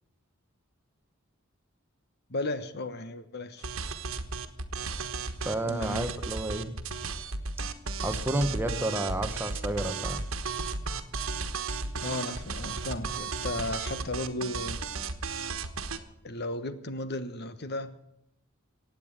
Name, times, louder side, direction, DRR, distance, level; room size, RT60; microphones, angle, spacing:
voice 1, 2.3-3.7 5.6-6.1 12.0-14.8 16.2-17.9, left 2 dB, 50° left, 12 dB, 1.1 m, -35 dB
sound 1, 3.6-16.0, right 4 dB, 90° right, 1.3 m, -34 dB
voice 2, 5.4-6.7 8.0-10.2, right 1 dB, 10° right, 8 dB, 1.1 m, -30 dB
16.5 x 9.0 x 8.9 m, 0.78 s
head